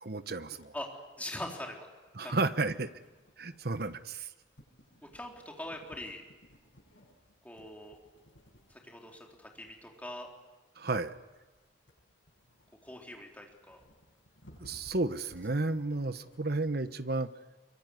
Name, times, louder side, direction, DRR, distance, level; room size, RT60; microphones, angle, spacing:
voice 1, 0.0-0.7 2.1-2.9 3.4-4.3 10.8-11.1 14.6-17.3, right 2 dB, 55° right, 11 dB, 1.1 m, -32 dB
sound 1, 0.6-16.9, equal, 85° left, 7.9 m, -61 dB
voice 2, 0.7-1.9 2.2-2.3 5.1-6.2 7.4-8.0 8.7-10.3 12.8-13.8, left 1 dB, 10° left, 0 dB, 3.7 m, -42 dB
24.0 x 24.0 x 9.7 m, 1.2 s
head